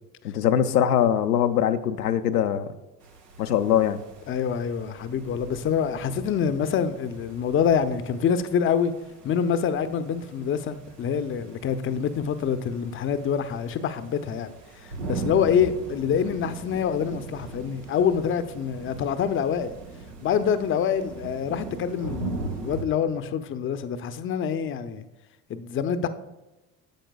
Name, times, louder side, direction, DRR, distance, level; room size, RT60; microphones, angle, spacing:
voice 1, 0.2-2.7 3.4-4.0, left 9 dB, 80° left, 0.6 m, -22 dB
sound 1, 3.0-22.8, right 3 dB, 90° right, 0.8 m, -40 dB
voice 2, 4.3-8.9 9.2-14.5 14.8-19.7 20.2-25.0 25.5-26.1, left 7 dB, 30° left, 0.6 m, -26 dB
10.5 x 7.7 x 2.3 m
figure-of-eight pair, 65°, 46 cm